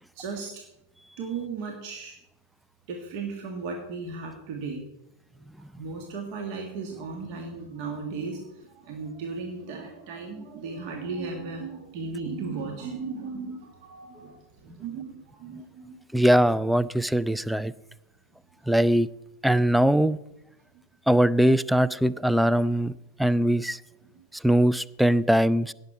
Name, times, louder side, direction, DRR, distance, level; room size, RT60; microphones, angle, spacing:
voice 1, 0.1-0.5 1.2-2.1 2.9-4.8 5.8-15.9 20.7-20.8, right 4 dB, 45° right, 2 dB, 1.7 m, -36 dB
voice 2, 16.1-17.7 18.7-19.1 19.4-20.2 21.1-22.9 23.2-23.8 24.4-25.7, equal, ahead, 18 dB, 0.3 m, -21 dB
17.0 x 6.7 x 4.5 m, 0.91 s
figure-of-eight pair, 90°, 0 cm